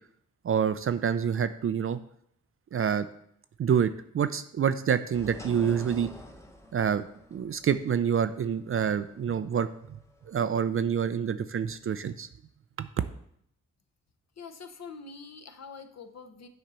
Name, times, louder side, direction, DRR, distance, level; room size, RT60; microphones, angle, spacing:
voice 1, 0.4-2.0 2.7-3.1 3.6-6.1 6.7-7.0 7.3-9.7 10.3-12.3 12.8-12.9, right 7 dB, 40° right, 11 dB, 0.4 m, -27 dB
sound 1, 5.1-10.4, left 1 dB, 10° left, 0.9 m, -47 dB
voice 2, 14.4-16.5, left 5 dB, 50° left, 8 dB, 0.8 m, -45 dB
7.4 x 2.8 x 5.5 m, 0.69 s
supercardioid pair, 50°, 35 cm